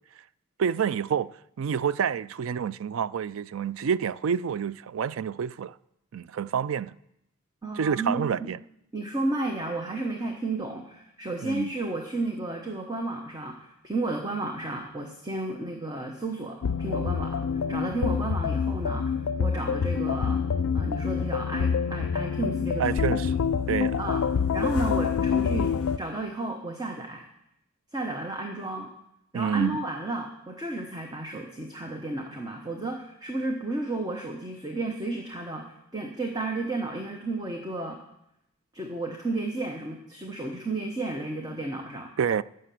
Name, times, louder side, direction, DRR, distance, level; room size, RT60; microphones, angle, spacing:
voice 1, 0.6-5.8 6.1-7.0 7.8-8.6 11.4-11.7 22.8-23.3 23.7-24.0 29.3-29.8 42.2-42.4, right 7 dB, 70° right, 0.4 m, -28 dB
voice 2, 7.6-8.5 8.9-20.4 20.7-23.0 23.2-23.3 24.0-24.2 24.5-27.2 27.9-28.9 29.3-38.0 38.7-42.1, right 2 dB, 20° right, 1.0 m, -32 dB
sound 1, 16.6-26.0, left 6 dB, 80° left, 0.4 m, -27 dB
12.5 x 7.8 x 7.6 m
head